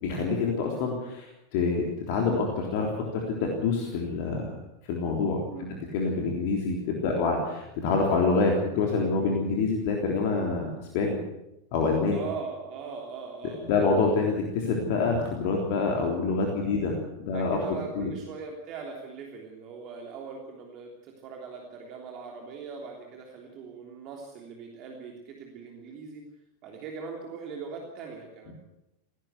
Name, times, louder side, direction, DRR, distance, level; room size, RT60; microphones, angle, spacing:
voice 1, 0.0-4.5 4.8-7.4 7.8-10.7 10.9-11.2 11.7-12.2 13.6-17.6 18.0-18.1, left 4 dB, 50° left, 0 dB, 3.5 m, -26 dB
voice 2, 5.5-5.9 7.1-7.3 8.2-8.4 12.1-13.9 16.5-16.8 17.3-26.2 26.6-28.5, right 5 dB, 40° right, 1 dB, 3.3 m, -41 dB
19.0 x 17.0 x 8.2 m, 0.88 s
figure-of-eight pair, 90°, 0 cm